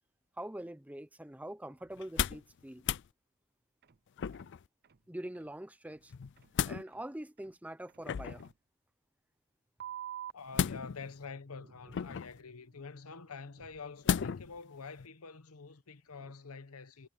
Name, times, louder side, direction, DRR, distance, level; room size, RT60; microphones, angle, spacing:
voice 1, 0.4-2.9 5.1-6.1 6.6-8.4, right 1 dB, 5° right, 0.7 m, -44 dB
sound 1, 1.7-2.1 3.8-4.0 4.3-4.5 4.8-5.0 5.3-5.5 5.8-6.0 6.4-6.6 6.9-7.1 7.4-7.6 7.9-8.1 8.4-8.6 9.8-10.3 11.4-15.0 16.1-16.3, right 11 dB, 45° right, 0.6 m, -51 dB
sound 2, 2.0-2.5 2.8-3.1 4.2-4.6 6.1-6.8 8.0-8.5 10.5-11.2 11.9-12.4 14.0-14.5 15.0-15.1, left 7 dB, 55° left, 0.4 m, -33 dB
voice 2, 10.3-17.1, left 4 dB, 85° left, 1.0 m, -47 dB
head